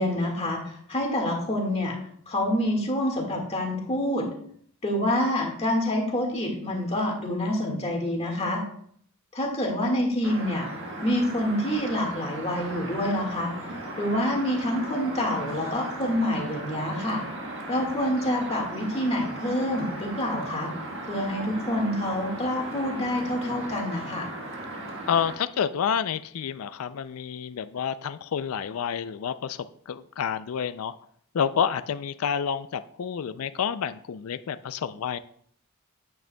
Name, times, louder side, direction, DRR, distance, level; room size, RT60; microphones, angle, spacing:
voice 1, 0.0-2.0 2.3-4.3 4.8-8.6 9.3-10.7 11.0-13.5 14.0-17.2 17.7-20.7 21.1-24.3, left 1 dB, 30° left, 0 dB, 1.8 m, -27 dB
sound 1, 10.2-25.4, right 1 dB, 60° right, 1.4 m, -37 dB
voice 2, 25.1-30.9 31.3-35.2, left 7 dB, 75° left, 12 dB, 0.4 m, -29 dB
9.1 x 8.5 x 2.2 m, 0.62 s
head